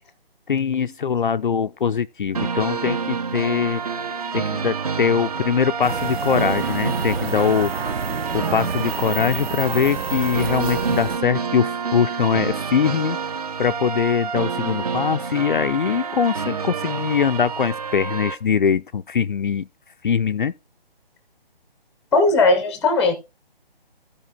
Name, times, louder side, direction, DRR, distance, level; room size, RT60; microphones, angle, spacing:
voice 1, 0.5-3.8 4.3-7.7 8.3-13.2 13.6-19.7 20.0-20.5, left 7 dB, 55° left, 0.5 m, -22 dB
sound 1, 2.3-18.3, right 5 dB, 40° right, 1.2 m, -28 dB
sound 2, 5.8-11.2, right 5 dB, 80° right, 1.2 m, -29 dB
voice 2, 22.1-23.1, left 3 dB, 5° left, 0.8 m, -17 dB
15.0 x 5.2 x 3.8 m
hypercardioid pair, 165°, 30 cm